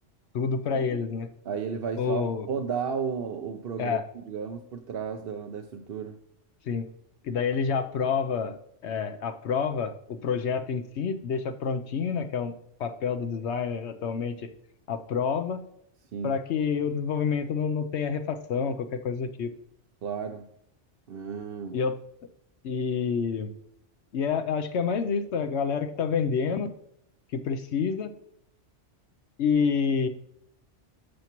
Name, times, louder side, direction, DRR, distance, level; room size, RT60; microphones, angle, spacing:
voice 1, 0.3-1.3 2.0-2.5 3.8-4.0 6.7-6.9 7.2-8.6 8.8-12.5 12.8-14.5 14.9-15.6 16.2-19.5 21.7-21.9 22.6-23.5 24.1-26.7 27.3-28.1 29.4-30.1, left 6 dB, 75° left, 8 dB, 0.9 m, -28 dB
voice 2, 1.4-6.2 16.1-16.4 20.0-20.5 21.1-21.8, right 6 dB, 60° right, 4 dB, 0.9 m, -33 dB
11.5 x 7.0 x 3.0 m, 0.75 s
omnidirectional pair, 1.2 m